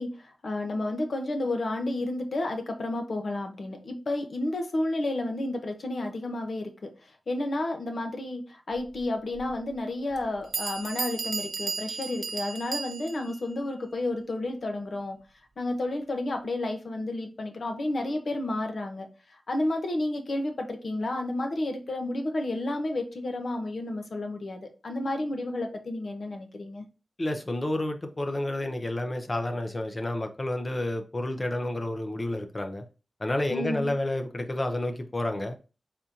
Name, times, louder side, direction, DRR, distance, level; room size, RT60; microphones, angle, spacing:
voice 1, 0.0-6.9 7.3-15.2 15.6-26.8 33.5-33.9, left 2 dB, 65° left, 0.9 m, -31 dB
Bell, 9.4-9.5 10.2-10.3 10.5-13.3, right 4 dB, 55° right, 0.9 m, -34 dB
voice 2, 27.2-32.8 33.2-35.6, left 1 dB, 30° left, 0.6 m, -30 dB
4.2 x 3.7 x 2.8 m
wide cardioid pair, 100°, 0 cm